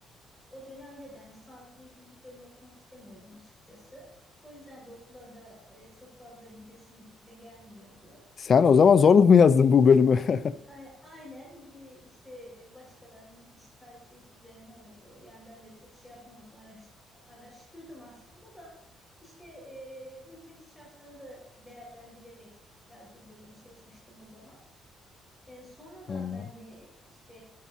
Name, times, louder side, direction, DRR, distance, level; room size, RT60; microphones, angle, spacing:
voice 1, 0.5-4.0 4.4-8.2 9.8-18.9 19.2-24.6 25.5-27.4, equal, 10° left, -3 dB, 5.1 m, -50 dB
voice 2, 8.4-10.4 26.1-26.4, left 6 dB, 40° left, 15 dB, 0.4 m, -18 dB
14.0 x 12.0 x 2.7 m, 0.75 s
cardioid pair, 140°, 0 cm